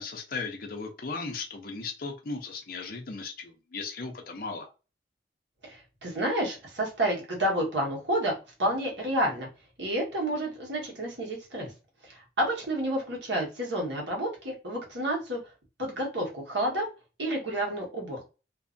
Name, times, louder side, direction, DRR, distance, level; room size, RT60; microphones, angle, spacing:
voice 1, 0.0-4.7, left 4 dB, 50° left, 0.5 m, -37 dB
voice 2, 5.6-8.3 8.6-9.5 9.8-11.7 12.0-15.4 15.8-16.9 17.2-18.2, right 1 dB, 85° right, 1.2 m, -30 dB
2.6 x 2.3 x 2.5 m
head